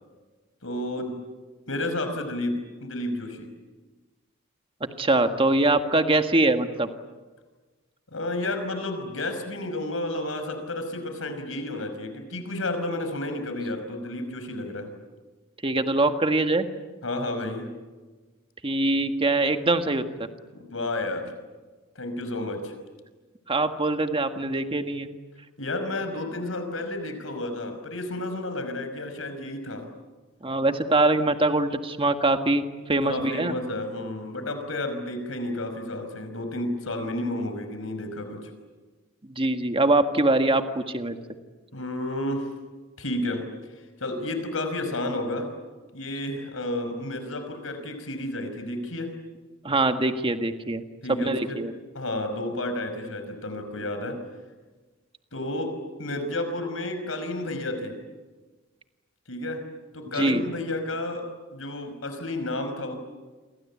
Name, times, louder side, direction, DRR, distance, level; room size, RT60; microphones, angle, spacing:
voice 1, 0.6-1.2 1.7-3.5 8.1-14.9 17.0-17.7 20.5-21.3 22.0-22.7 25.6-29.9 33.0-38.4 41.7-42.5 43.0-43.4 43.8-45.5 45.9-49.1 51.0-51.6 51.9-54.2 55.3-58.0 59.3-59.6 59.9-63.0, left 1 dB, 70° left, 8 dB, 5.4 m, -31 dB
voice 2, 5.0-6.9 15.6-16.7 18.6-20.0 23.5-25.1 30.4-33.6 39.3-41.2 49.6-50.8 51.1-51.7 60.1-60.4, right 2 dB, 25° right, 7 dB, 1.7 m, -23 dB
29.0 x 23.5 x 8.6 m, 1.3 s
head